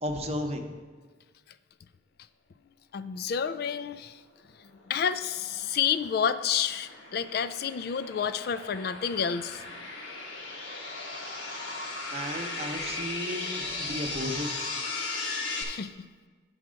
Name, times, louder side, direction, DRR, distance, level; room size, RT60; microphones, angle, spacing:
voice 1, 0.0-0.7 12.1-14.7, equal, 35° right, 4 dB, 0.8 m, -34 dB
voice 2, 2.9-4.2 4.6-9.6 15.2-15.3 15.6-15.9, left 7 dB, 55° left, 13 dB, 0.3 m, -30 dB
sound 1, 4.8-15.6, left 3 dB, 85° left, 1.5 m, -37 dB
8.7 x 4.7 x 6.2 m, 1.4 s
head